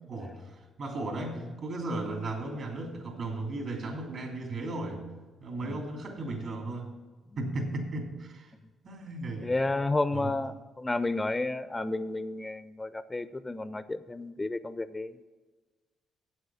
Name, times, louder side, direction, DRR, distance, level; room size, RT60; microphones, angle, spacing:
voice 1, 0.1-5.0 5.4-6.9 7.4-8.5 8.8-9.5 10.1-10.3, right 2 dB, 60° right, 1 dB, 2.9 m, -35 dB
voice 2, 9.4-15.3, left 2 dB, 15° left, 13 dB, 0.4 m, -31 dB
8.5 x 7.7 x 7.1 m, 1.3 s
cardioid pair, 90°, 0 cm